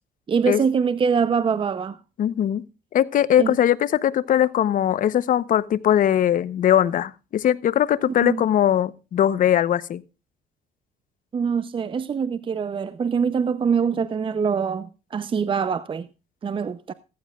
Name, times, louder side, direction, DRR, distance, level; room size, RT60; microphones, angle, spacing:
voice 1, 0.3-2.0 3.4-3.6 8.1-8.4 11.3-16.1 16.4-16.9, right 6 dB, 30° right, 0.7 m, -24 dB
voice 2, 2.2-2.6 2.9-10.0, left 10 dB, 50° left, 0.9 m, -20 dB
15.5 x 14.5 x 2.4 m
cardioid pair, 110°, 17 cm